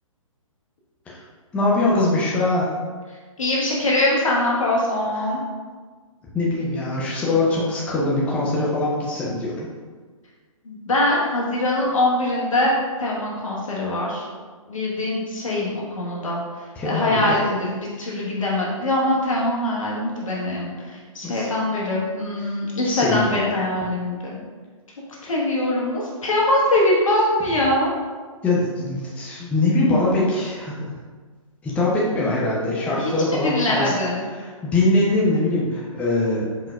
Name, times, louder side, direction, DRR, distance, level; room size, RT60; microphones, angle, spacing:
voice 1, 1.5-2.7 6.3-9.7 16.8-17.4 21.2-21.5 22.9-23.4 28.4-30.9 31.6-33.9 34.3-36.5, left 2 dB, 5° left, -6 dB, 0.5 m, -22 dB
voice 2, 3.4-5.4 10.6-12.7 13.0-14.2 14.7-16.4 16.8-24.4 25.2-27.9 33.0-34.2, left 1 dB, 70° left, -4 dB, 1.4 m, -23 dB
4.6 x 3.7 x 2.3 m, 1.5 s
figure-of-eight pair, 130°, 18 cm